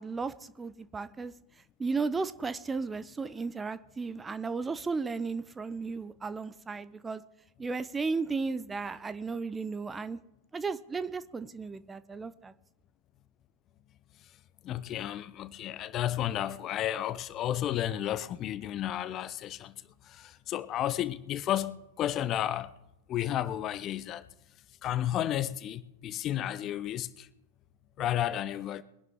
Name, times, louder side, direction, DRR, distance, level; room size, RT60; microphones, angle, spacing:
voice 1, 0.0-1.3 1.8-7.2 7.6-10.2 10.5-12.5, right 4 dB, 15° right, 0.6 m, -34 dB
voice 2, 14.6-19.7 20.0-22.7 23.1-24.3 24.8-27.3 28.0-28.8, left 12 dB, 35° left, 0.6 m, -32 dB
22.0 x 11.0 x 3.7 m
figure-of-eight pair, 90°, 0 cm